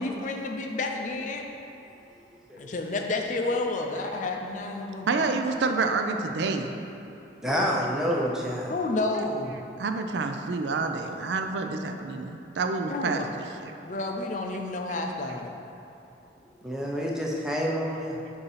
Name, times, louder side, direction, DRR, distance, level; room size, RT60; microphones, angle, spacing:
voice 1, 0.0-1.4 2.6-5.1 7.5-7.6 8.7-9.6 12.9-13.3 13.8-15.5, left 2 dB, 45° left, 3 dB, 0.4 m, -30 dB
voice 2, 5.1-6.7 9.8-13.2 13.6-13.7, right 4 dB, 80° right, 5 dB, 0.4 m, -28 dB
voice 3, 7.4-8.7 16.6-18.2, equal, 5° right, -3 dB, 0.5 m, -28 dB
6.9 x 2.7 x 5.6 m, 2.8 s
head